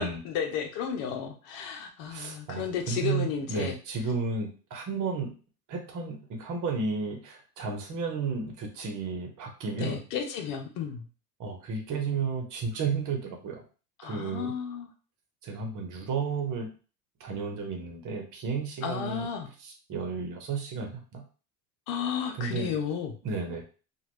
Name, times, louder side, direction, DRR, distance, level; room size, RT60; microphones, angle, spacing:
voice 1, 0.0-3.8 9.8-11.1 14.0-14.9 18.8-19.5 21.9-23.2, left 7 dB, 65° left, 4 dB, 0.9 m, -33 dB
voice 2, 2.0-5.3 5.7-10.0 11.4-13.6 14.0-14.5 15.4-16.7 17.2-19.3 19.6-21.2 22.4-22.7 23.2-23.6, right 5 dB, 45° right, 3 dB, 1.1 m, -33 dB
3.1 x 2.5 x 3.1 m, 0.36 s
supercardioid pair, 95°, 44 cm